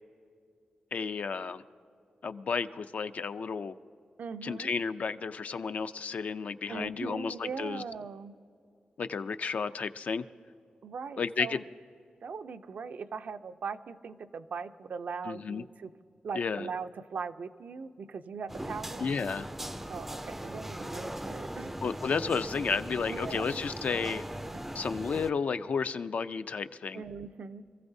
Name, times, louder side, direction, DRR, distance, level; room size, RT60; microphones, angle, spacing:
voice 1, 0.9-1.6 2.2-3.8 4.4-7.8 9.0-10.3 11.2-11.6 15.3-15.6 16.3-16.7 19.0-19.5 21.8-24.2 24.7-27.0, left 5 dB, 60° left, 11 dB, 0.5 m, -32 dB
voice 2, 4.2-4.7 6.7-8.4 10.8-11.6 12.2-15.9 16.2-19.1 19.9-21.7 23.1-23.4 26.9-27.6, right 5 dB, 70° right, 10 dB, 0.5 m, -40 dB
sound 1, 18.5-25.3, right 1 dB, 10° right, 0.4 m, -39 dB
26.0 x 15.0 x 2.7 m, 2.4 s
wide cardioid pair, 160°, 3 cm